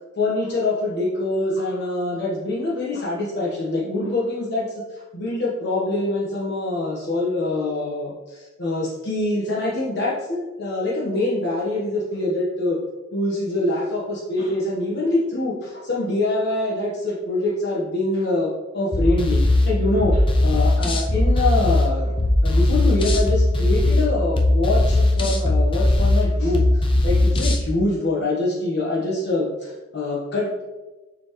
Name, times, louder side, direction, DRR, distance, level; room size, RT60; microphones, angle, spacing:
voice 1, 0.2-12.8 13.1-22.1 22.4-30.6, left 2 dB, 55° left, -6 dB, 1.2 m, -25 dB
sound 1, 18.9-27.6, left 1 dB, 25° left, 0.7 m, -19 dB
7.0 x 4.4 x 3.1 m, 1.2 s
head